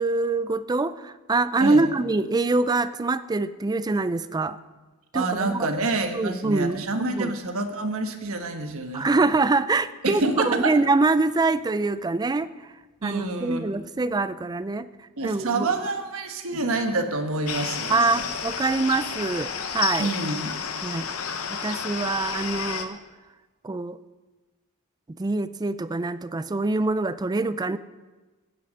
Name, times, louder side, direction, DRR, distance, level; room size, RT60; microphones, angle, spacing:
voice 1, 0.0-4.6 5.1-5.7 6.1-6.8 7.1-7.3 8.9-12.5 13.0-14.9 15.2-15.9 17.9-20.1 20.8-21.1 21.5-23.0 23.6-24.0 25.2-27.8, right 3 dB, 20° right, 14 dB, 0.4 m, -24 dB
voice 2, 5.1-9.1 10.0-10.7 13.0-13.7 15.2-18.3 20.0-20.5, right 2 dB, 65° right, 6 dB, 1.3 m, -27 dB
sound 1, 17.5-22.9, left 6 dB, 70° left, 0.9 m, -31 dB
10.0 x 9.5 x 6.4 m, 1.2 s
head